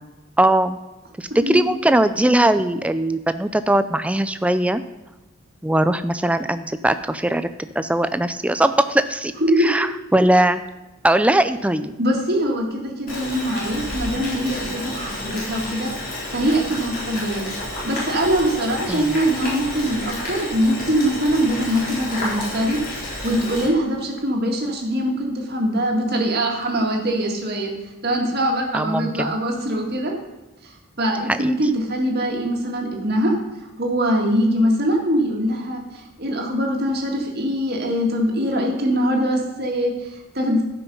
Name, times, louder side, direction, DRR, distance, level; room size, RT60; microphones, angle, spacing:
voice 1, 0.4-0.8 1.2-4.8 5.6-7.5 7.8-9.3 9.6-10.6 11.0-11.9 18.9-19.2 28.7-29.3 31.3-31.7, right 1 dB, 5° right, 11 dB, 0.3 m, -20 dB
voice 2, 9.4-9.9 12.0-15.9 16.3-17.4 17.8-27.7 28.0-30.1 30.6-30.7 31.0-33.3 33.6-40.6, equal, 45° right, 0 dB, 2.0 m, -22 dB
Boiling, 13.1-23.7, left 1 dB, 40° left, 3.9 m, -31 dB
13.0 x 5.9 x 5.4 m, 1.1 s
head